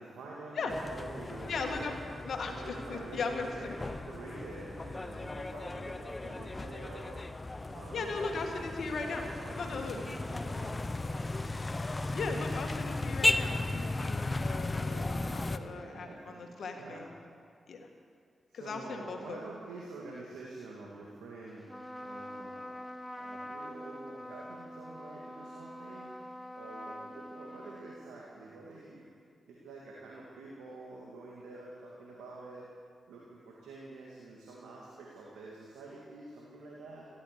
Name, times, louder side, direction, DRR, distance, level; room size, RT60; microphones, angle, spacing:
voice 1, 0.0-2.0 2.5-7.3 7.7-10.8 14.9-17.1 18.5-21.7 22.0-22.7 23.2-26.2 26.6-29.1 29.5-32.7 33.1-37.0, right 3 dB, 85° right, -4 dB, 2.0 m, -47 dB
sound 1, 0.7-15.6, left 2 dB, 30° left, 0.9 m, -36 dB
voice 2, 1.5-2.0 2.2-3.7 7.9-9.3 9.6-10.0 12.1-17.1 17.7-17.9 18.5-19.4, left 4 dB, 70° left, 3 dB, 1.8 m, -38 dB
Trumpet, 21.6-28.5, equal, 10° left, 1.4 m, -45 dB
15.0 x 12.5 x 6.7 m, 2.2 s
supercardioid pair, 40°, 0 cm